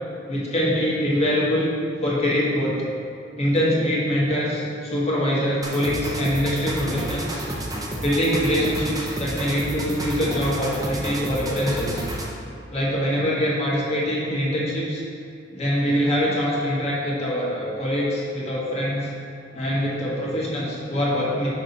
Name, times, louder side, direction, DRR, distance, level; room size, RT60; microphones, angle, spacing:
voice 1, 0.3-1.7 2.0-2.8 3.4-7.5 8.0-12.0 12.7-15.0 15.5-19.1 19.5-21.5, equal, 35° left, -6 dB, 1.6 m, -24 dB
sound 1, 5.6-12.4, right 1 dB, 20° right, 0.7 m, -30 dB
6.1 x 5.6 x 4.1 m, 2.6 s
head